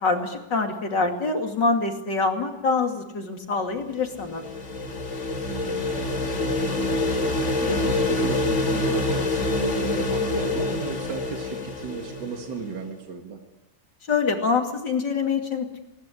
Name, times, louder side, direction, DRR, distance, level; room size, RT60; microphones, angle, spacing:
voice 1, 0.0-4.4 14.1-15.8, left 4 dB, 65° left, 4 dB, 3.2 m, -25 dB
sound 1, 3.9-12.7, left 2 dB, 40° left, 2.2 m, -26 dB
voice 2, 5.5-6.9 7.4-13.4, right 5 dB, 65° right, 3 dB, 2.6 m, -35 dB
21.0 x 19.5 x 9.9 m, 1.0 s
omnidirectional pair, 2.1 m